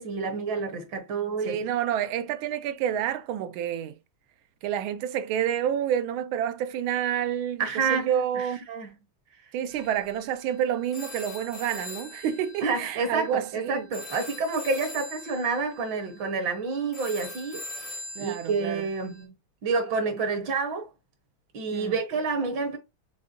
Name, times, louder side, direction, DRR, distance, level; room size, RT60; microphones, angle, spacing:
voice 1, 0.0-1.6 7.6-8.9 12.6-17.6 18.2-19.3 19.6-20.9 21.5-22.8, right 4 dB, 70° right, 1.8 m, -29 dB
voice 2, 1.5-3.9 4.6-8.6 9.5-13.9 18.2-18.8 21.7-21.9, right 9 dB, 90° right, 1.4 m, -29 dB
sound 1, 9.7-19.2, left 1 dB, 40° left, 0.5 m, -43 dB
5.5 x 3.6 x 2.5 m
omnidirectional pair, 2.2 m